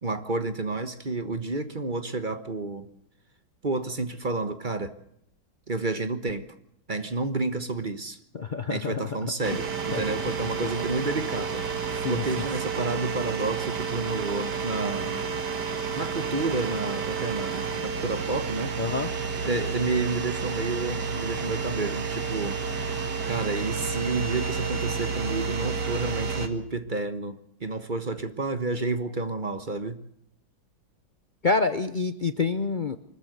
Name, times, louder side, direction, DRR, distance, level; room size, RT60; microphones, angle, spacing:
voice 1, 0.0-2.9 3.6-4.9 5.7-6.5 6.9-8.2 8.7-15.3 15.9-18.8 19.4-22.6 23.3-30.0, right 3 dB, 30° right, 1.1 m, -30 dB
voice 2, 8.3-9.0 9.9-10.0 12.0-12.2 18.8-19.1 31.4-33.0, left 4 dB, 85° left, 0.4 m, -27 dB
sound 1, 9.4-26.5, right 5 dB, 55° right, 2.3 m, -30 dB
24.5 x 14.0 x 8.0 m
omnidirectional pair, 2.2 m